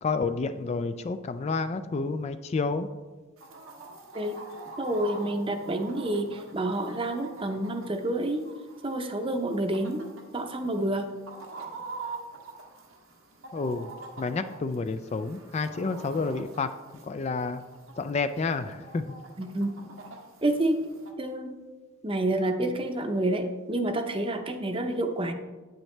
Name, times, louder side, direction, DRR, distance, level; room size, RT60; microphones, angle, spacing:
voice 1, 0.0-2.9 13.5-13.9 14.2-16.7 17.0-17.6 18.0-19.0, left 4 dB, 30° left, 10 dB, 0.3 m, -29 dB
Chicken rooster, 3.4-21.1, right 3 dB, 85° right, 1.4 m, -45 dB
voice 2, 4.8-8.5 8.8-10.1 10.3-11.1 19.4-19.8 20.4-20.8 21.2-21.5 22.0-25.3, right 1 dB, 25° right, 6 dB, 0.7 m, -28 dB
9.0 x 8.9 x 3.3 m, 1.3 s
head